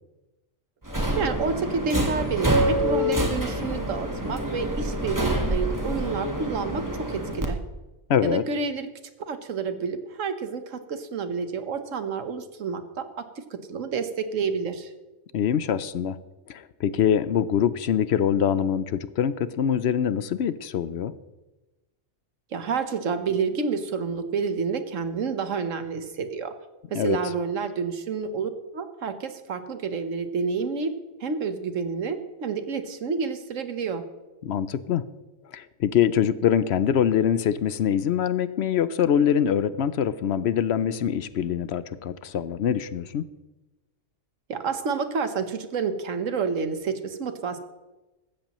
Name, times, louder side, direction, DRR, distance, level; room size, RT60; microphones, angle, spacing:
Subway metro underground, 0.8-7.5, right 1 dB, 15° right, 1.4 m, -26 dB
voice 1, 1.2-7.6 8.2-8.9 9.3-13.2 13.5-14.9 22.5-26.5 26.9-30.9 31.2-34.0 44.5-47.6, right 5 dB, 75° right, 9 dB, 1.4 m, -29 dB
voice 2, 8.1-8.4 15.3-16.2 16.5-21.1 26.9-27.2 34.4-35.0 35.5-43.3, left 9 dB, 65° left, 15 dB, 0.8 m, -24 dB
15.5 x 13.0 x 3.1 m, 1.1 s
omnidirectional pair, 1.3 m